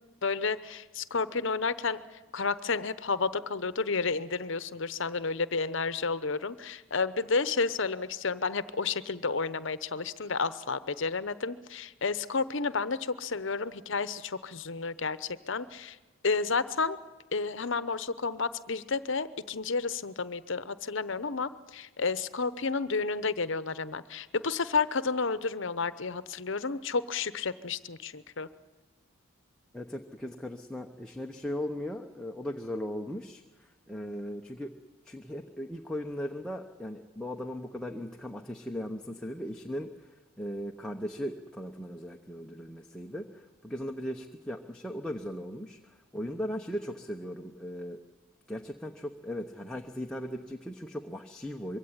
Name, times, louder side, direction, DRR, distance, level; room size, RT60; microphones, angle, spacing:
voice 1, 0.2-16.0 16.2-17.0 17.3-28.5, left 4 dB, 60° left, 15 dB, 0.9 m, -31 dB
voice 2, 29.7-34.8 35.0-48.0 48.5-51.8, equal, 5° left, 2 dB, 0.9 m, -38 dB
23.0 x 16.5 x 9.9 m, 1.2 s
head